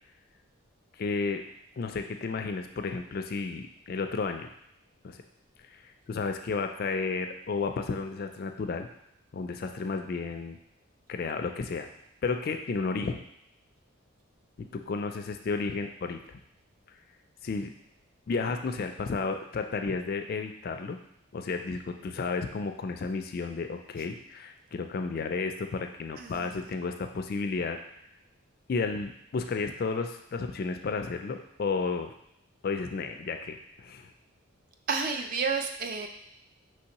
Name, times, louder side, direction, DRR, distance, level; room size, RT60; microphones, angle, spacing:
voice 1, 1.0-1.4 1.8-4.5 5.0-5.2 5.7-5.8 6.1-8.9 9.3-10.6 11.1-11.9 12.2-13.2 14.6-16.4 17.4-17.7 18.3-21.0 21.3-27.8 28.7-32.1 32.6-34.1, left 4 dB, 45° left, 6 dB, 0.3 m, -32 dB
voice 2, 26.2-26.6 34.9-36.1, right 5 dB, 40° right, 5 dB, 0.4 m, -31 dB
5.4 x 3.2 x 2.9 m, 0.75 s
head